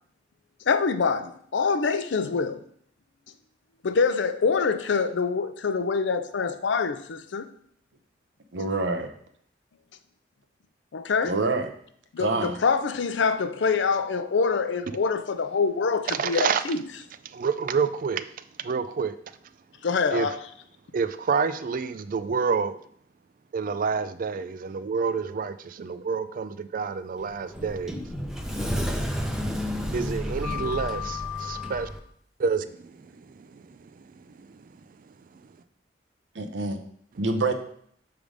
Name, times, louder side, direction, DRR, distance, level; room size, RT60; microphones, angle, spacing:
voice 1, 0.7-2.6 3.8-7.5 10.9-11.3 12.1-16.8 19.8-20.4, left 5 dB, 80° left, 0.5 m, -25 dB
voice 2, 8.5-9.1 11.2-11.7 12.2-12.6 36.3-36.8 37.2-37.5, right 3 dB, 90° right, 0.8 m, -26 dB
voice 3, 16.1-16.7 17.2-19.2 20.1-20.3 20.9-22.8 23.5-28.0 29.9-31.9 32.4-35.5, right 5 dB, 50° right, 0.4 m, -29 dB
Sliding door, 27.2-32.0, left 1 dB, 5° right, 0.6 m, -31 dB
6.3 x 3.5 x 5.0 m
head